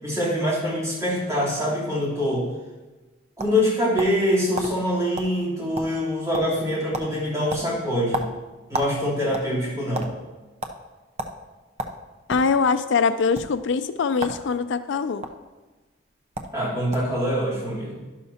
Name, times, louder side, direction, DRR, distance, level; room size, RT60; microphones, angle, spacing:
voice 1, 0.0-2.5 3.4-8.2 8.7-10.1 16.5-18.0, equal, 15° right, -7 dB, 3.5 m, -24 dB
sound 1, 2.8-4.3 4.6-4.7 5.2-5.3 5.6-6.1 6.3-6.6 6.9-7.1 7.5-9.0 9.3-10.1 10.6-10.8 11.2-11.3 11.8-12.5 13.2-13.4 14.2-14.4 14.7-15.3 16.0-16.1 16.4-16.6 16.9-17.2, right 2 dB, 35° right, 0.8 m, -31 dB
voice 2, 12.3-15.3, left 5 dB, 70° left, 11 dB, 0.4 m, -23 dB
12.0 x 11.5 x 2.9 m, 1.2 s
head